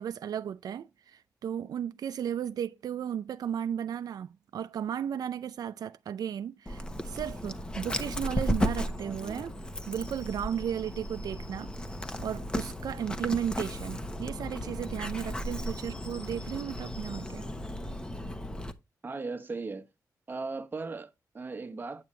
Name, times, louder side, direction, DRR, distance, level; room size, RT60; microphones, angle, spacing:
voice 1, 0.0-9.6 9.9-11.7 12.2-17.5, right 9 dB, 85° right, 0.4 m, -35 dB
Dog, 6.7-18.7, equal, 15° left, 1.0 m, -35 dB
voice 2, 9.0-9.4 19.0-19.9 20.3-22.0, right 3 dB, 30° right, 1.2 m, -38 dB
8.8 x 8.6 x 3.2 m
wide cardioid pair, 125°, 7 cm